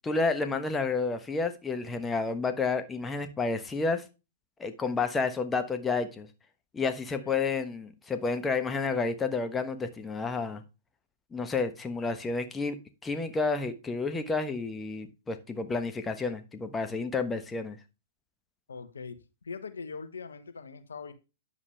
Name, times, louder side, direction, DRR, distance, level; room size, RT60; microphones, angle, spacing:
voice 1, 0.0-4.0 4.6-6.3 6.7-10.6 11.3-12.8 13.0-17.8, left 4 dB, 15° left, 8 dB, 1.2 m, -30 dB
voice 2, 18.7-21.1, left 5 dB, 80° left, 10 dB, 1.2 m, -42 dB
9.8 x 7.2 x 3.4 m, 0.29 s
hypercardioid pair, 115°, 0 cm